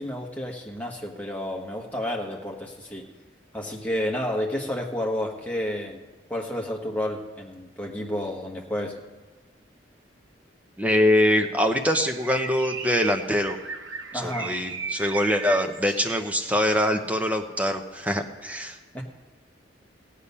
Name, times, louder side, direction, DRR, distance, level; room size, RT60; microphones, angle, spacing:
voice 1, 0.0-3.1 3.5-6.0 6.3-9.0 14.1-14.5 18.9-19.0, left 1 dB, 5° left, -1 dB, 1.3 m, -30 dB
voice 2, 10.8-13.6 14.1-18.8, left 1 dB, 10° right, 4 dB, 0.8 m, -24 dB
Bird, 11.8-16.7, right 4 dB, 80° right, 1.0 m, -36 dB
16.5 x 8.4 x 5.5 m, 1.2 s
head